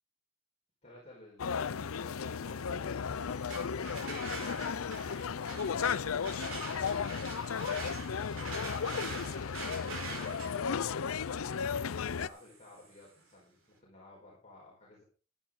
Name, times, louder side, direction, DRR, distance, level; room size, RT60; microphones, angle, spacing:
voice 1, 0.8-3.8 8.8-11.8 12.1-15.0, left 2 dB, 30° left, -4 dB, 4.7 m, -56 dB
sound 1, 1.4-12.3, left 6 dB, 90° left, 0.5 m, -35 dB
sound 2, 3.2-13.1, right 3 dB, 70° right, 5.6 m, -45 dB
14.0 x 10.5 x 3.8 m, 0.35 s
head